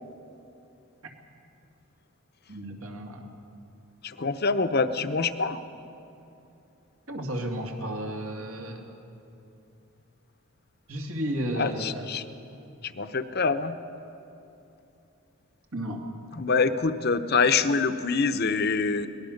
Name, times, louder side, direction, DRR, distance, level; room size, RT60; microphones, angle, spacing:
voice 1, 2.5-3.3 7.1-8.9 10.9-12.1 15.7-16.0, right 1 dB, 75° right, 1 dB, 2.7 m, -33 dB
voice 2, 4.0-5.6 11.6-12.2 12.8-13.8 16.3-19.1, left 4 dB, 45° left, 11 dB, 0.8 m, -25 dB
23.0 x 19.5 x 6.5 m, 2.8 s
head